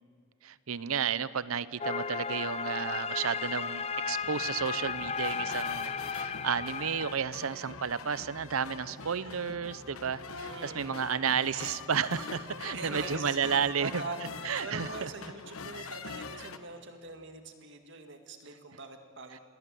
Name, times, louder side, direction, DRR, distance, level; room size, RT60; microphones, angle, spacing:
voice 1, 0.4-14.0 14.4-15.1, right 7 dB, 80° right, 16 dB, 0.7 m, -32 dB
sound 1, 1.8-7.1, left 5 dB, 30° left, 0.5 m, -34 dB
sound 2, 4.1-14.7, equal, 45° left, 3.2 m, -55 dB
sound 3, 4.3-16.6, left 4 dB, 80° left, 1.1 m, -44 dB
voice 2, 10.5-11.2 12.7-19.4, right 3 dB, 60° right, 5 dB, 2.1 m, -43 dB
27.0 x 20.5 x 7.7 m, 2.2 s
head